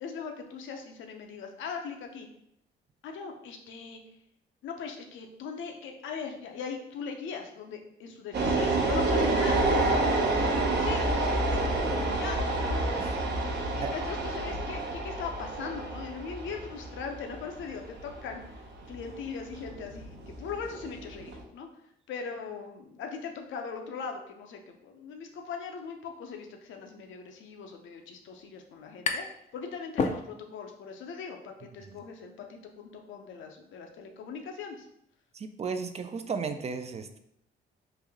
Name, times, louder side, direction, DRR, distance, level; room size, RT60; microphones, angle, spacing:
voice 1, 0.0-2.3 3.0-4.0 4.6-9.6 10.8-11.3 12.1-12.7 13.6-18.4 18.9-21.7 22.1-29.3 29.5-34.9, left 5 dB, 75° left, 4 dB, 0.6 m, -40 dB
sound 1, 8.3-21.4, right 2 dB, 60° right, 0.7 m, -29 dB
voice 2, 13.0-13.4 13.7-13.9 31.9-32.0 35.3-37.2, right 5 dB, 35° right, 9 dB, 0.4 m, -35 dB
sound 2, 28.4-29.5 29.8-30.7, left 4 dB, 40° left, 0.4 m, -31 dB
3.3 x 2.6 x 3.5 m, 0.75 s
cardioid pair, 90°, 20 cm